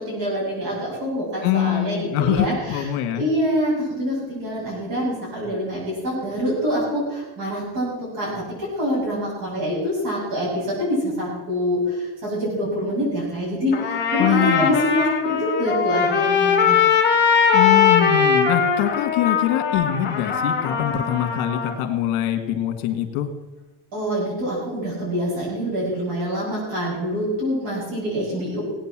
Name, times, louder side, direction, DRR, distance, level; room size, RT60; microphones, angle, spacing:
voice 1, 0.0-2.9 3.1-16.8 23.9-28.6, equal, 45° right, -7 dB, 7.6 m, -25 dB
voice 2, 1.4-3.3 14.2-14.7 17.5-23.3, left 11 dB, 75° left, 7 dB, 2.3 m, -23 dB
Trumpet, 13.7-21.7, left 6 dB, 20° left, 3.0 m, -20 dB
19.0 x 9.1 x 7.6 m, 1.1 s
cardioid pair, 165°, 47 cm